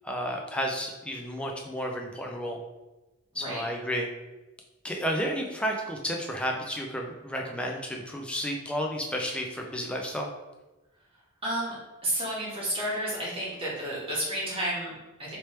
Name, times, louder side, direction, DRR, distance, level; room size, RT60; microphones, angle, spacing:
voice 1, 0.0-2.6 3.3-4.1 4.8-10.3, equal, 5° left, 0 dB, 0.4 m, -32 dB
voice 2, 11.4-11.7 12.0-15.4, right 1 dB, 25° right, -7 dB, 1.3 m, -31 dB
3.1 x 2.9 x 3.1 m, 1.1 s
head